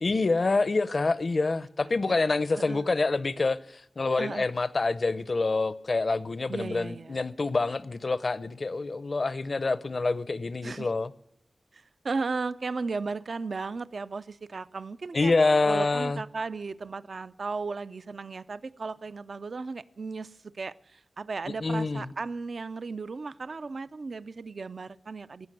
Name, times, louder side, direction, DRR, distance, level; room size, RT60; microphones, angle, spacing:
voice 1, 0.0-3.6 4.0-11.1 15.1-16.2 21.6-22.1, left 3 dB, 55° left, 0.6 m, -26 dB
voice 2, 1.8-2.9 4.1-4.5 6.5-7.2 10.6-10.9 11.7-15.3 15.7-25.5, right 4 dB, 65° right, 0.4 m, -35 dB
17.5 x 6.0 x 9.1 m
wide cardioid pair, 80°, 0 cm